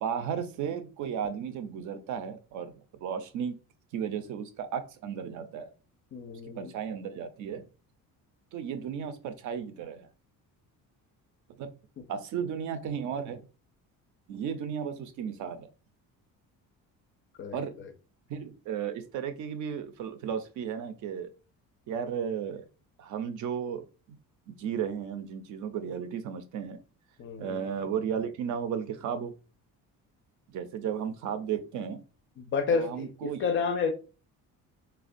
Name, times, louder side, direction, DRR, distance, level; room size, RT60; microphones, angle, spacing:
voice 1, 0.0-2.7 3.0-3.5 3.9-5.7 6.4-7.6 8.5-10.1 11.6-11.7 12.1-13.4 14.3-15.7 17.5-17.7 18.3-21.3 21.9-22.6 23.0-24.2 24.5-26.8 27.4-29.3 30.5-32.0 32.7-33.5, right 8 dB, 60° right, 0.5 m, -34 dB
voice 2, 6.1-6.7 17.4-17.6 27.2-27.5 32.4-33.9, left 5 dB, 40° left, 0.4 m, -30 dB
4.2 x 2.2 x 2.5 m
cardioid pair, 170°, 34 cm